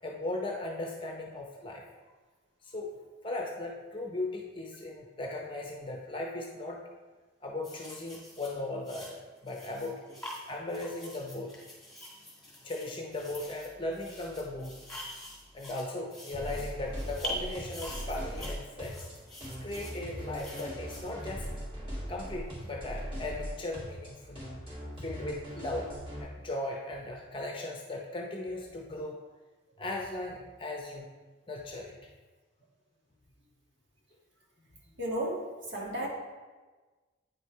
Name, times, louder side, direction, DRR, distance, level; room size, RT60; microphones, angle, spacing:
voice 1, 0.0-1.8 2.6-2.9 3.2-6.8 7.4-10.0 10.5-11.5 12.6-14.8 15.5-19.1 19.6-21.5 22.1-24.4 25.0-25.9 26.2-29.2 29.8-31.1 31.5-32.0, left 2 dB, 25° left, 0 dB, 0.6 m, -37 dB
sound 1, 7.6-21.7 22.5-22.7, equal, ahead, 1.8 m, -45 dB
sound 2, 16.3-26.2, equal, 30° right, 2.5 m, -40 dB
voice 2, 35.0-36.1, right 1 dB, 65° right, -2 dB, 1.7 m, -33 dB
9.0 x 4.7 x 4.5 m, 1.3 s
head